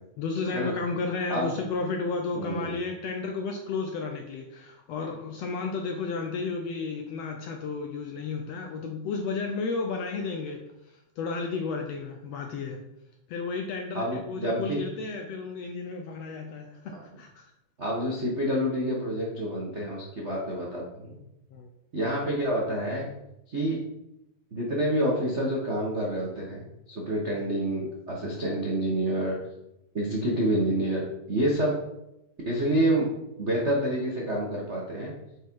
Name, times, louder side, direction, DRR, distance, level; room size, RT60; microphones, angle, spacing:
voice 1, 0.2-12.8 13.3-17.5 21.5-21.7 27.3-27.4, left 4 dB, 75° left, 3 dB, 1.5 m, -33 dB
voice 2, 2.3-2.7 13.9-14.8 16.9-17.0 17.8-21.2 21.9-23.1 23.5-23.8 24.5-29.4 29.9-31.0 31.3-31.8 32.5-33.1 33.4-35.1, right 1 dB, 55° right, -4 dB, 0.7 m, -28 dB
9.0 x 5.1 x 4.6 m, 0.88 s
omnidirectional pair, 3.6 m